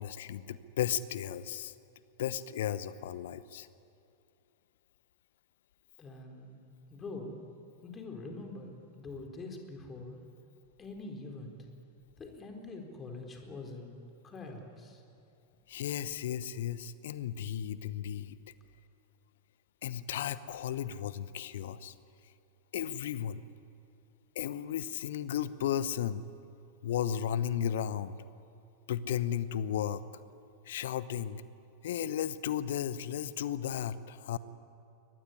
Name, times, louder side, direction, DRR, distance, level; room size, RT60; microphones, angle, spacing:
voice 1, 0.0-1.7 2.2-3.7 15.7-18.4 19.8-21.9 22.7-23.4 24.3-26.2 26.8-28.2 28.9-30.0 30.7-31.4 31.8-34.4, left 10 dB, 55° left, 16 dB, 0.9 m, -34 dB
voice 2, 6.0-6.6 6.9-7.4 7.8-10.2 10.8-11.6 12.2-13.9 14.2-15.0, left 3 dB, 20° left, 3 dB, 4.2 m, -44 dB
23.0 x 19.5 x 9.9 m, 2.6 s
figure-of-eight pair, 90°, 0 cm